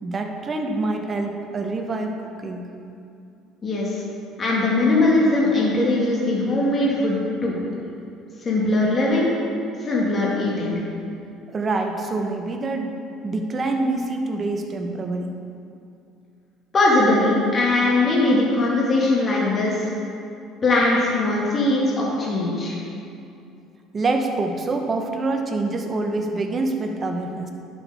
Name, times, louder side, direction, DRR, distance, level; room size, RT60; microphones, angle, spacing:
voice 1, 0.0-2.1 2.4-2.7 11.5-12.9 13.2-15.3 23.9-27.5, right 2 dB, 30° right, 4 dB, 0.9 m, -26 dB
voice 2, 3.6-4.0 4.4-7.6 8.4-9.3 9.8-10.8 16.7-19.9 20.6-22.8, left 2 dB, 35° left, -5 dB, 1.7 m, -20 dB
11.0 x 6.2 x 3.5 m, 2.6 s
cardioid pair, 105°, 0 cm